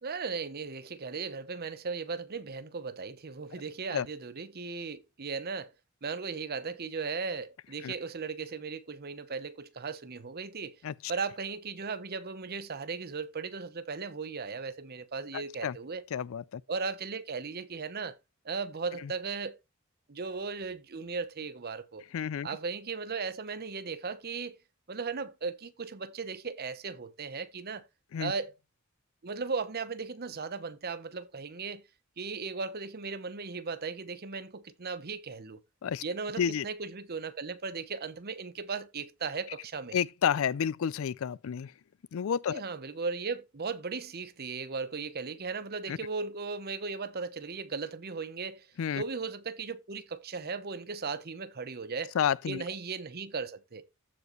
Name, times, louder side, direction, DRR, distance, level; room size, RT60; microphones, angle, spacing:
voice 1, 0.0-5.7 6.0-10.7 11.1-16.0 16.7-18.2 18.4-19.6 20.1-22.0 22.4-24.6 24.9-27.8 28.2-28.5 29.2-31.9 32.2-35.6 36.0-40.0 42.5-48.7 49.0-52.1 52.5-53.9, right 4 dB, 45° right, 0.8 m, -37 dB
voice 2, 16.1-16.6 19.0-19.1 22.1-22.5 28.1-28.3 35.8-36.0 36.4-36.6 39.9-41.7 42.1-42.6 45.9-46.0 48.8-49.0 52.2-52.6, left 8 dB, 65° left, 0.4 m, -30 dB
14.5 x 4.9 x 3.1 m
head